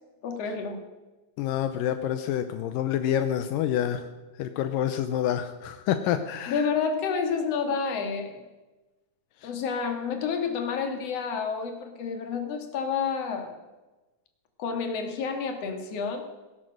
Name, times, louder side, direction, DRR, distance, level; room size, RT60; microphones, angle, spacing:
voice 1, 0.2-0.8 6.5-8.4 9.4-13.5 14.6-16.2, left 5 dB, 50° left, 5 dB, 2.8 m, -29 dB
voice 2, 1.4-4.1 4.4-6.7 9.4-9.5, left 10 dB, 80° left, 9 dB, 2.4 m, -27 dB
17.5 x 11.0 x 6.4 m, 1.1 s
omnidirectional pair, 4.0 m